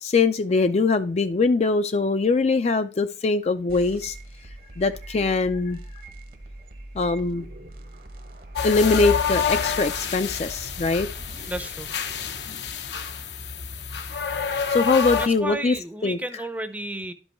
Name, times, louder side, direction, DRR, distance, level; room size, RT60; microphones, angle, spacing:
voice 1, 0.0-4.1 4.8-5.8 6.9-7.4 8.6-11.1 14.7-15.7 16.0-16.2, left 3 dB, 35° left, 10 dB, 0.4 m, -22 dB
sound 1, 3.7-12.7, right 1 dB, 55° right, 1.0 m, -42 dB
sound 2, 8.6-15.3, left 6 dB, 70° left, 0.7 m, -28 dB
voice 2, 11.5-11.9 15.2-17.1, right 1 dB, 10° right, 10 dB, 0.6 m, -32 dB
11.5 x 5.4 x 3.0 m, 0.36 s
head